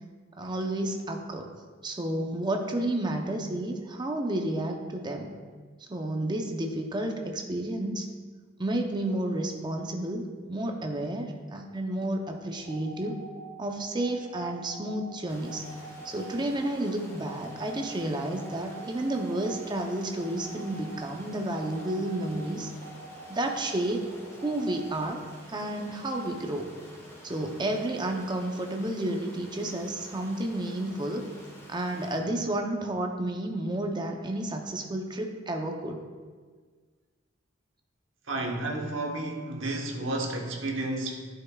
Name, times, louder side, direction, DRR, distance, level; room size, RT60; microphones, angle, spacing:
voice 1, 0.4-1.5 1.8-5.3 5.9-8.1 8.6-13.2 13.6-15.6 16.0-22.7 23.3-24.1 24.4-25.2 25.5-26.7 27.2-31.3 31.7-36.0, right 1 dB, 20° right, 3 dB, 0.6 m, -31 dB
sound 1, 12.5-24.8, right 4 dB, 50° right, 1.6 m, -47 dB
Stream, 15.3-32.2, equal, 15° left, 1.1 m, -49 dB
voice 2, 38.3-41.3, right 2 dB, 70° right, 1 dB, 1.0 m, -31 dB
11.0 x 5.7 x 2.3 m, 1.5 s
head